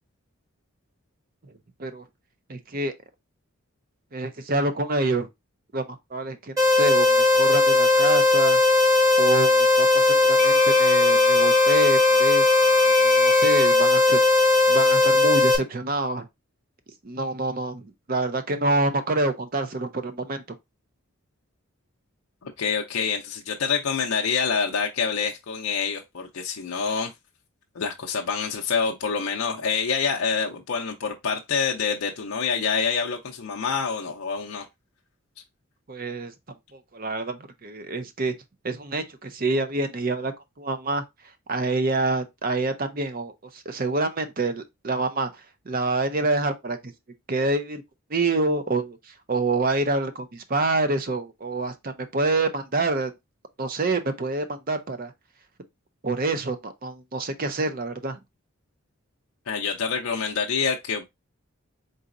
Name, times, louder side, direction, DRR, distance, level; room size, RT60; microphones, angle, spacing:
voice 1, 2.5-2.9 4.1-5.3 5.7-8.6 9.2-12.7 13.0-14.2 14.7-16.3 17.0-20.4 35.9-36.3 36.7-38.3 38.6-40.3 40.6-41.0 41.5-45.3 45.7-46.9 47.3-47.8 48.1-53.1 53.6-55.1 56.0-58.2, right 2 dB, 40° right, 0.6 m, -27 dB
sound 1, 6.6-15.6, left 3 dB, 15° right, 1.3 m, -18 dB
Wind instrument woodwind instrument, 10.4-13.8, left 7 dB, 30° left, 0.3 m, -31 dB
voice 2, 22.4-27.1 27.7-34.7 59.5-61.0, left 5 dB, 75° left, 0.5 m, -26 dB
4.0 x 3.9 x 2.5 m
head